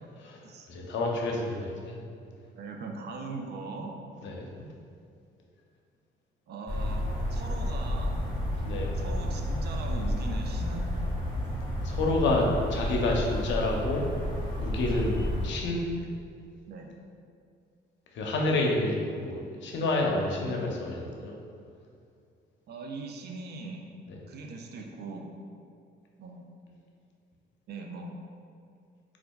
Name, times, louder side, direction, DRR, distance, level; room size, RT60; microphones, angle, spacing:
voice 1, 0.2-1.9 4.2-4.5 8.6-8.9 11.8-14.0 14.6-15.8 18.1-21.3 24.1-24.2, left 2 dB, 65° left, 0 dB, 0.5 m, -29 dB
voice 2, 2.5-4.0 6.5-8.2 8.5-10.9 16.7-16.9 22.7-23.9 24.3-25.3 26.2-26.5 27.7-28.2, right 3 dB, 55° right, 3 dB, 0.4 m, -40 dB
sound 1, 6.7-15.5, equal, 20° left, 0.9 m, -31 dB
4.3 x 2.4 x 2.2 m, 2.3 s
cardioid pair, 90°, 20 cm